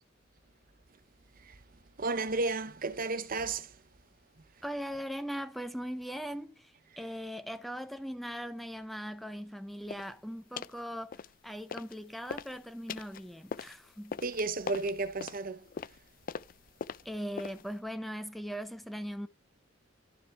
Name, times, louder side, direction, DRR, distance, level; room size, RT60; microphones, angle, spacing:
voice 1, 2.0-3.8 14.2-15.7, right 3 dB, 50° right, 0.9 m, -33 dB
voice 2, 4.6-14.2 17.0-19.3, equal, ahead, 0.6 m, -40 dB
sound 1, 9.9-10.1 10.6-10.8 11.1-12.0 12.2-17.8, left 6 dB, 50° left, 0.4 m, -42 dB
11.5 x 7.3 x 3.4 m
head